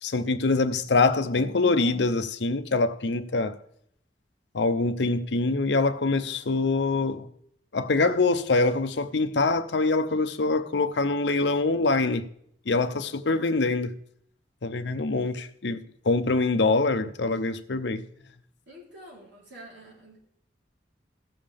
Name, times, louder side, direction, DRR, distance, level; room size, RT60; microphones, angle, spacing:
voice 1, 0.0-3.6 4.5-7.3 7.7-12.2 12.7-13.9 14.6-18.0, left 3 dB, 70° left, 0.7 m, -24 dB
voice 2, 18.7-20.2, right 1 dB, 85° right, 3.8 m, -47 dB
16.0 x 7.2 x 3.5 m
head